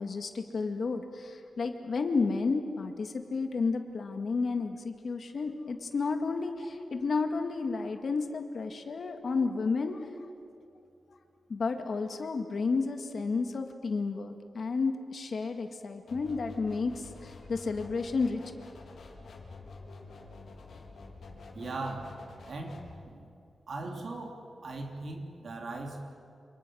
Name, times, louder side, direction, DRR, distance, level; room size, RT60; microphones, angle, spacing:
voice 1, 0.0-10.1 11.5-18.5, left 4 dB, 55° left, 6 dB, 2.0 m, -31 dB
sound 1, 16.1-22.9, left 3 dB, 80° left, 4.2 m, -48 dB
voice 2, 21.5-22.2 22.5-22.8 23.0-23.3 23.7-26.1, right 2 dB, 55° right, 2 dB, 3.4 m, -39 dB
28.5 x 28.5 x 6.4 m, 2.4 s
wide cardioid pair, 155°, 0 cm